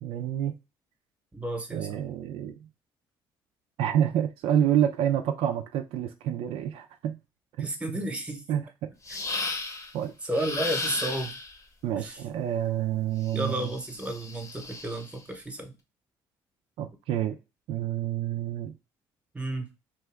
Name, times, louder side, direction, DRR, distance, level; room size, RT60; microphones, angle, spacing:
voice 1, 0.0-0.5 1.7-2.6 3.8-7.2 7.6-7.7 8.5-8.6 9.9-10.1 11.8-13.7 16.8-17.3 17.7-18.7, right 10 dB, 75° right, 0.4 m, -28 dB
voice 2, 1.3-2.0 7.6-8.6 9.1-9.2 10.2-11.4 12.0-12.2 13.3-15.7 19.3-19.7, right 1 dB, 15° right, 0.9 m, -32 dB
sound 1, 9.1-9.9 10.3-11.6 13.3-15.2, left 3 dB, 35° left, 0.8 m, -35 dB
2.8 x 2.3 x 3.3 m
supercardioid pair, 75°, 10 cm